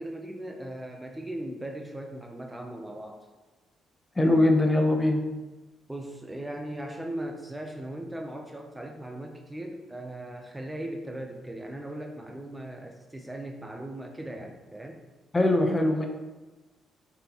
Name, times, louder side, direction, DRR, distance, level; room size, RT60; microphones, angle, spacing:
voice 1, 0.0-3.3 5.9-15.0, right 1 dB, 10° right, 3 dB, 0.7 m, -38 dB
voice 2, 4.2-5.2 15.3-16.1, left 1 dB, 20° left, 4 dB, 0.9 m, -22 dB
6.6 x 5.6 x 3.0 m, 1.2 s
cardioid pair, 90°, 0 cm